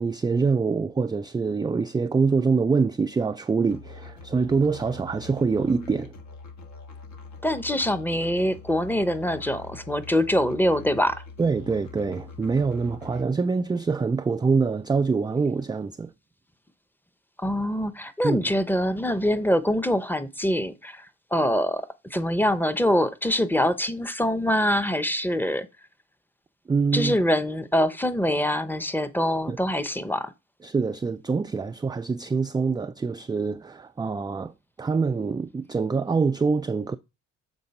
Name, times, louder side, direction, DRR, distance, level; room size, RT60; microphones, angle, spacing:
voice 1, 0.0-6.1 11.4-16.1 18.2-18.4 26.7-27.2 29.5-29.6 30.6-34.5 34.8-37.0, right 4 dB, 15° right, 0.3 m, -25 dB
Musical instrument, 3.7-13.3, left 4 dB, 65° left, 1.7 m, -44 dB
voice 2, 7.4-11.2 17.4-21.1 21.3-25.7 26.9-30.3, left 1 dB, 5° left, 0.7 m, -24 dB
7.0 x 3.8 x 5.3 m
cardioid pair, 90°, 30 cm